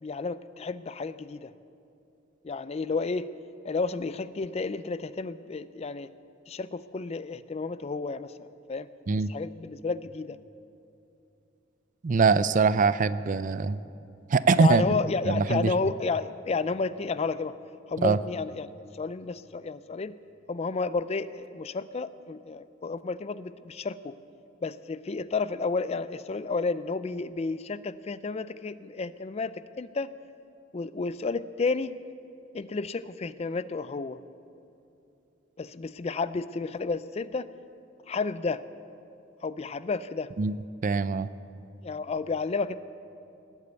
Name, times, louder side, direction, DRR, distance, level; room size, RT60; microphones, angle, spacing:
voice 1, 0.0-1.5 2.4-3.3 3.6-6.1 6.5-8.9 9.3-10.4 14.6-17.5 17.9-18.7 18.9-20.1 20.5-24.1 24.6-30.1 30.7-31.9 32.5-34.2 35.6-37.5 38.1-38.6 39.4-40.3 41.8-42.8, left 4 dB, 35° left, 15 dB, 0.4 m, -31 dB
voice 2, 12.0-13.8 14.3-14.8 15.3-15.7 18.0-18.2 40.4-40.6 40.8-41.3, right 4 dB, 40° right, 15 dB, 0.4 m, -23 dB
20.0 x 8.4 x 8.1 m, 2.7 s
head